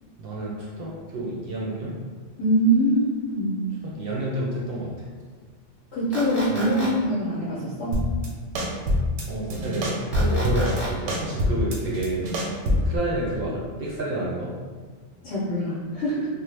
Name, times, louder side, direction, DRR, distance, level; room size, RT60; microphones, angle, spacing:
voice 1, 0.2-2.0 3.8-4.9 6.5-6.9 9.3-12.2 12.8-14.5, right 1 dB, 60° right, -4 dB, 0.7 m, -29 dB
voice 2, 2.4-3.6 5.9-8.0 15.2-16.3, right 1 dB, 75° left, -7 dB, 0.9 m, -23 dB
sound 1, 6.1-6.9 10.1-10.9, right 2 dB, ahead, 0.8 m, -33 dB
sound 2, 7.9-8.3 8.6-9.2 9.5-10.8 11.1-13.0, left 1 dB, 85° right, 0.9 m, -24 dB
3.0 x 2.0 x 3.1 m, 1.5 s
omnidirectional pair, 1.2 m